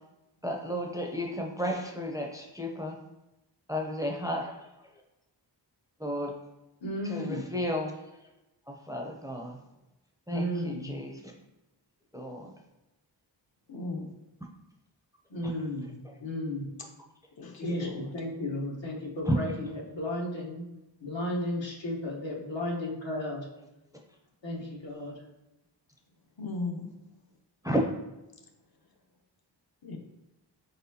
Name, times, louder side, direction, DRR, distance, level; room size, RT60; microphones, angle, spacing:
voice 1, 0.4-3.0 3.7-4.5 6.0-6.3 7.1-7.9 8.7-9.6 10.3-11.3 12.1-12.5 15.4-15.5 19.3-19.4 27.6-27.8, equal, 10° right, 1 dB, 0.5 m, -32 dB
voice 2, 6.8-7.5 10.3-10.9 15.3-16.7 17.6-20.7 21.0-23.5 24.4-25.2, left 1 dB, 75° left, -3 dB, 1.2 m, -34 dB
voice 3, 13.7-14.1 17.4-18.1 26.4-26.9 29.8-30.0, left 3 dB, 55° left, 3 dB, 0.8 m, -36 dB
4.4 x 4.1 x 2.7 m, 0.97 s
wide cardioid pair, 70°, 44 cm